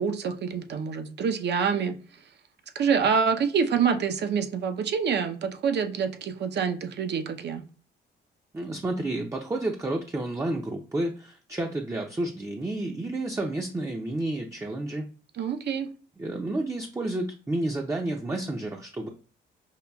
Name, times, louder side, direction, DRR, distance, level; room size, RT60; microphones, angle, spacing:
voice 1, 0.0-2.0 2.7-7.6 15.4-15.9, right 6 dB, 60° right, 6 dB, 0.7 m, -26 dB
voice 2, 8.5-15.1 16.2-19.1, right 2 dB, 15° right, 2 dB, 0.5 m, -30 dB
5.4 x 2.3 x 2.3 m, 0.39 s
cardioid pair, 90°, 20 cm